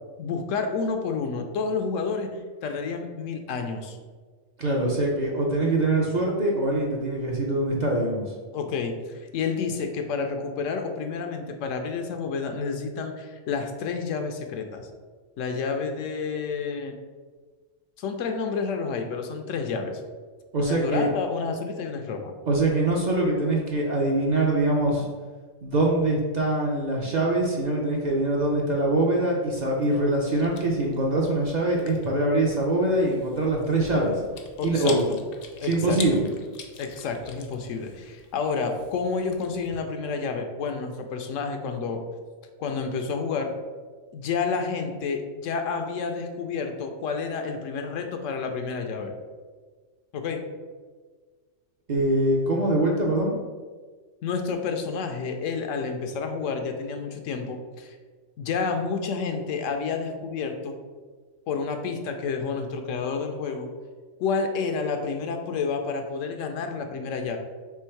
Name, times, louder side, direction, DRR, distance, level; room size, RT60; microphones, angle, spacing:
voice 1, 0.2-2.3 2.6-4.0 8.5-14.9 15.4-16.9 18.0-20.0 20.6-22.3 34.6-35.0 35.6-36.2 36.8-42.0 42.6-43.5 44.1-49.1 50.1-50.4 54.2-58.0 58.4-60.7 61.5-63.7 64.2-67.4, left 5 dB, 85° left, 5 dB, 1.0 m, -29 dB
voice 2, 4.6-8.3 20.5-21.1 22.5-25.1 25.6-34.2 34.6-35.0 35.6-36.3 51.9-53.4, right 2 dB, 50° right, -2 dB, 0.6 m, -23 dB
Chewing mastication, 29.6-39.8, left 5 dB, 60° left, 0.7 m, -45 dB
3.6 x 3.1 x 4.4 m, 1.4 s
omnidirectional pair, 1.3 m